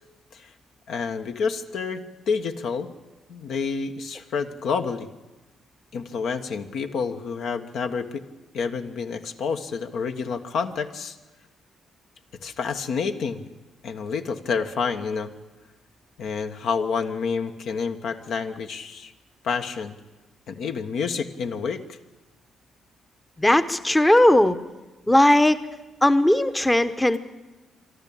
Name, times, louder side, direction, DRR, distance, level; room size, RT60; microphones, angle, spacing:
voice 1, 0.9-2.9 3.3-5.1 5.9-8.2 8.5-11.2 12.4-13.5 13.8-15.3 16.2-19.1 19.4-19.9 20.5-22.0, left 5 dB, 70° left, 6 dB, 1.3 m, -29 dB
voice 2, 23.4-24.6 25.1-25.6 26.0-27.2, left 1 dB, 10° left, 12 dB, 0.9 m, -18 dB
24.5 x 12.5 x 8.7 m, 1.1 s
cardioid pair, 90°, 0 cm